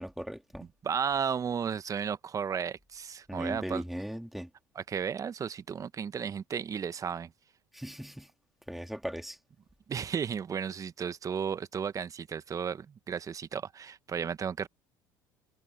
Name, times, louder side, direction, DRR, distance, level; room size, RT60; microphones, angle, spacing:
voice 1, 0.0-0.7 3.3-4.5 7.7-8.3 8.7-9.4, equal, ahead, 3.1 m, -38 dB
voice 2, 0.8-3.8 4.7-7.3 9.9-14.7, right 7 dB, 35° right, 1.5 m, -34 dB
hypercardioid pair, 65°, 10 cm